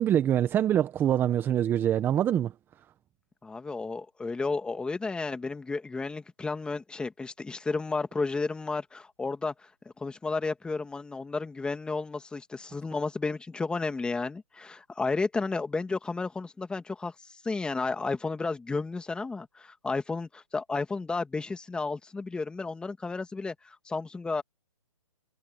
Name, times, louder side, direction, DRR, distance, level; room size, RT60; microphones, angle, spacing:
voice 1, 0.0-2.5, right 10 dB, 10° right, 0.9 m, -24 dB
voice 2, 3.4-9.5 10.0-17.1 17.4-24.4, left 3 dB, 5° left, 2.0 m, -32 dB
hypercardioid pair, 145°, 17 cm